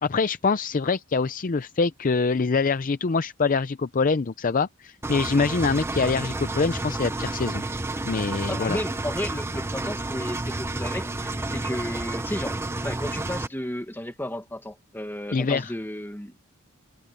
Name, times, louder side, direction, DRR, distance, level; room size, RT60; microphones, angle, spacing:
voice 1, 0.0-7.6 8.0-8.8 15.3-15.7, left 4 dB, 40° left, 0.5 m, -24 dB
Engine, 5.0-13.5, right 2 dB, 10° right, 0.6 m, -30 dB
voice 2, 8.5-12.6 12.8-16.4, left 1 dB, 10° left, 1.7 m, -33 dB
head